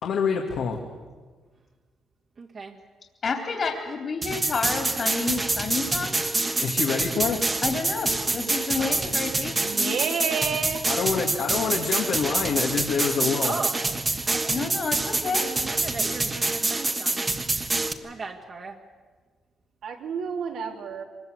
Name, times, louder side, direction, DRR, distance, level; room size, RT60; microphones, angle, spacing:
voice 1, 0.0-0.8 6.6-7.4 10.9-13.6, left 6 dB, 70° left, 1 dB, 2.2 m, -26 dB
voice 2, 2.4-2.8 8.8-9.0 9.9-10.0 11.5-11.6 13.4-13.8 14.3-14.6 15.2-17.2 18.0-18.8, right 4 dB, 45° right, -1 dB, 2.1 m, -36 dB
voice 3, 3.2-6.2 7.6-10.0 14.5-15.5, left 4 dB, 45° left, 4 dB, 3.3 m, -30 dB
sound 1, 4.2-17.9, right 3 dB, 25° right, 1.4 m, -26 dB
voice 4, 9.6-10.8 19.8-21.0, right 6 dB, 70° right, 3 dB, 2.8 m, -30 dB
24.0 x 21.0 x 8.0 m, 1.4 s
cardioid pair, 90°, 0 cm